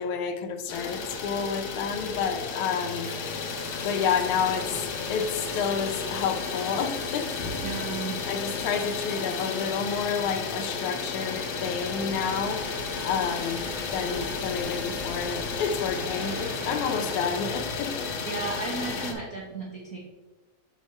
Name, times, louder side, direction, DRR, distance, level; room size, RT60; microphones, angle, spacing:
voice 1, 0.0-3.1 3.8-7.7 8.3-12.6 13.1-18.1, left 6 dB, 90° left, 5 dB, 2.3 m, -30 dB
Idling, 0.7-19.1, left 5 dB, 65° left, 1.2 m, -33 dB
Water tap faucet, 2.9-10.7 11.0-12.0, left 1 dB, 15° left, 0.8 m, -46 dB
voice 2, 7.6-8.2 18.2-20.0, right 3 dB, 85° right, -2 dB, 0.7 m, -34 dB
sound 1, 10.9-17.4, right 2 dB, 55° right, 2.6 m, -42 dB
6.3 x 6.2 x 4.3 m, 1.1 s
omnidirectional pair, 3.3 m